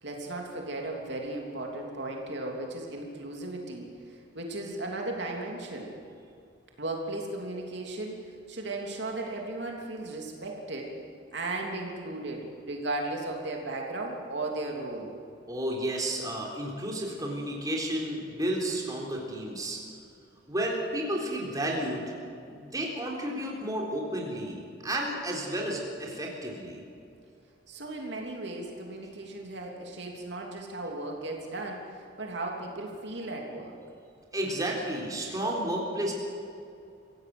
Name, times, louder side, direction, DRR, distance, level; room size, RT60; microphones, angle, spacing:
voice 1, 0.0-5.9 6.8-10.9 11.3-15.1 27.7-33.8, right 2 dB, 65° right, 0 dB, 3.1 m, -36 dB
voice 2, 15.5-19.8 20.5-22.1 22.5-26.8 34.3-36.1, right 1 dB, 20° right, -1 dB, 3.8 m, -32 dB
26.0 x 16.5 x 7.9 m, 2.5 s
head